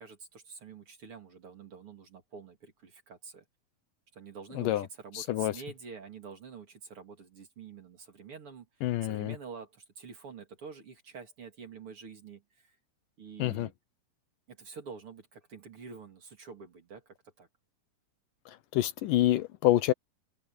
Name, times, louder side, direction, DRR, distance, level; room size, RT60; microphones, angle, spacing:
voice 1, 0.0-3.4 4.1-8.7 9.0-12.7 13.2-13.7 14.5-17.5, right 5 dB, 40° right, 3.1 m, -47 dB
voice 2, 5.2-5.5 8.8-9.4 13.4-13.7 18.7-19.9, left 15 dB, 75° left, 2.3 m, -27 dB
omnidirectional pair, 4.0 m